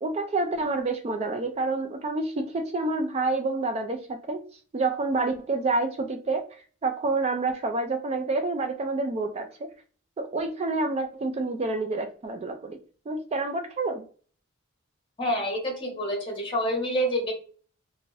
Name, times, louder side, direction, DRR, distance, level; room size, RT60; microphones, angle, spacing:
voice 1, 0.0-4.4 4.7-6.4 6.8-9.7 10.2-12.8 13.1-14.0, right 3 dB, 30° right, 6 dB, 0.3 m, -28 dB
voice 2, 15.2-17.3, equal, 25° left, 0 dB, 1.1 m, -27 dB
2.6 x 2.6 x 3.1 m, 0.41 s
head